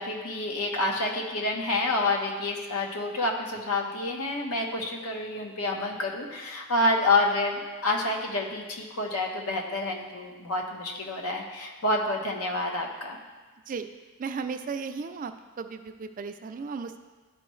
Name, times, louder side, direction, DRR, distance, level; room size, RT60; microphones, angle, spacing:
voice 1, 0.0-13.2, left 2 dB, 80° left, 1 dB, 1.1 m, -28 dB
voice 2, 14.2-15.3 15.6-17.0, right 5 dB, 35° right, 8 dB, 0.3 m, -35 dB
12.0 x 4.5 x 3.1 m, 1.3 s
head